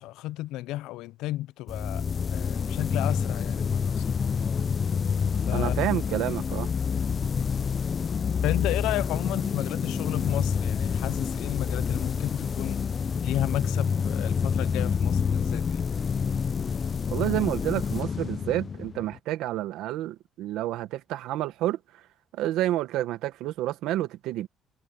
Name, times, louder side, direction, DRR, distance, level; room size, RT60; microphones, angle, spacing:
voice 1, 0.0-2.0 2.3-4.0 5.5-5.7 8.4-12.8 13.2-15.8, left 16 dB, 85° left, 0.4 m, -32 dB
sound 1, 1.7-19.2, left 6 dB, 30° left, 0.4 m, -28 dB
voice 2, 5.5-6.7 17.1-21.8 22.3-24.5, right 14 dB, 80° right, 1.4 m, -29 dB
cardioid pair, 140°, 0 cm